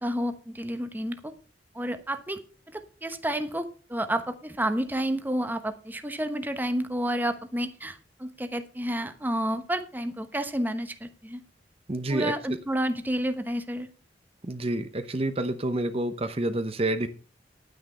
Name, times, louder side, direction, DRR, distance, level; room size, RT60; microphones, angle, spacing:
voice 1, 0.0-1.3 1.7-2.4 2.7-11.4 12.1-13.9, right 1 dB, 10° right, 9 dB, 1.0 m, -30 dB
voice 2, 11.9-12.3 14.4-17.1, right 1 dB, 35° right, 9 dB, 0.8 m, -28 dB
10.5 x 9.3 x 5.5 m, 0.38 s
head